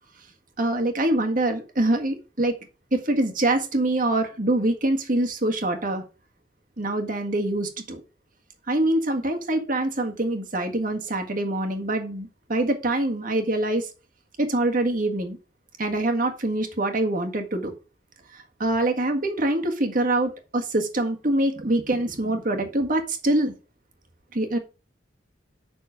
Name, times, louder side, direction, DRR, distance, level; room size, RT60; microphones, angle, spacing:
voice 1, 0.6-2.5 2.9-6.0 6.8-8.0 8.7-13.9 14.4-15.4 15.8-17.7 18.3-23.5 24.3-24.6, right 1 dB, 45° right, 1.6 m, -24 dB
7.4 x 6.1 x 4.9 m
head